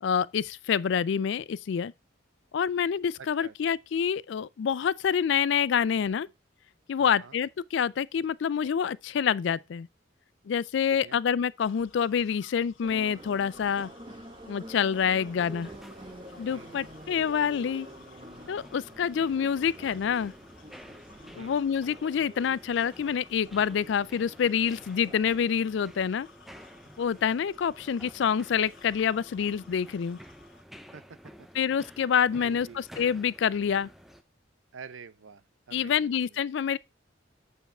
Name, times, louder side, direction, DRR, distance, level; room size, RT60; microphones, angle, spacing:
voice 1, 0.0-1.9 2.5-6.3 6.9-9.9 10.5-13.9 14.5-15.7 16.4-17.9 18.5-20.3 21.4-26.3 27.0-30.2 31.6-33.9 35.7-36.8, left 7 dB, 60° left, 0.3 m, -27 dB
voice 2, 3.2-3.5 7.0-7.4 10.9-11.2 16.5-16.9 21.4-21.6 30.9-31.5 32.4-32.8 34.7-36.4, right 6 dB, 75° right, 0.6 m, -48 dB
sound 1, 11.6-30.6, left 4 dB, 80° left, 1.7 m, -56 dB
Subway metro underground, 12.8-25.3, right 1 dB, 25° right, 1.1 m, -48 dB
sound 2, 15.0-34.2, equal, ahead, 0.5 m, -52 dB
8.1 x 4.7 x 4.3 m
head